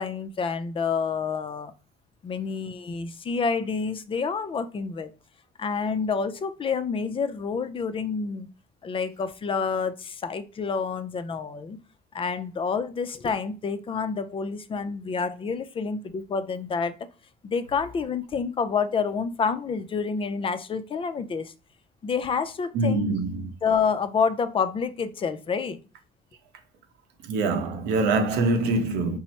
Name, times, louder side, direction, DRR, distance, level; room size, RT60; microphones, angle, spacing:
voice 1, 0.0-1.7 2.2-5.1 5.6-8.5 8.8-11.8 12.1-17.0 17.4-21.5 22.0-23.0 23.6-25.8, left 5 dB, 30° left, 0.4 m, -28 dB
voice 2, 22.7-23.5 27.2-29.2, right 3 dB, 90° right, 0.8 m, -24 dB
4.4 x 2.0 x 4.2 m
cardioid pair, 110°, 17 cm